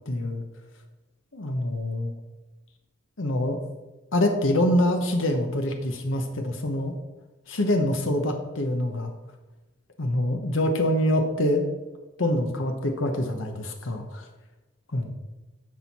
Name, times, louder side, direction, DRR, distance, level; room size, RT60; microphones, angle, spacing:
voice 1, 0.1-0.4 1.3-2.1 3.2-3.6 4.1-6.9 7.5-9.1 10.0-11.6 12.2-14.3 14.9-15.1, left 1 dB, 80° left, 4 dB, 1.0 m, -25 dB
10.5 x 6.3 x 4.2 m, 1.1 s
head